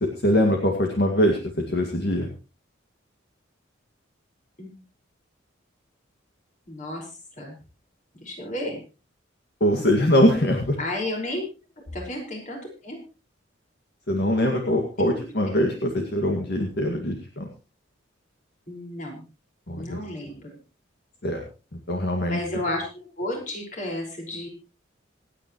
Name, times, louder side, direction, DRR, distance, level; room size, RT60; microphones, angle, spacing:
voice 1, 0.0-2.3 9.6-10.8 14.1-17.5 19.7-20.0 21.2-21.4 21.7-22.4, equal, 55° left, 2 dB, 2.1 m, -23 dB
voice 2, 6.7-7.1 7.4-7.6 8.2-8.8 10.8-11.4 11.8-12.6 12.8-13.0 15.0-15.2 18.7-19.2 19.8-20.5 22.3-24.5, left 1 dB, 40° left, 0 dB, 5.4 m, -32 dB
26.0 x 9.5 x 3.1 m, 0.33 s
head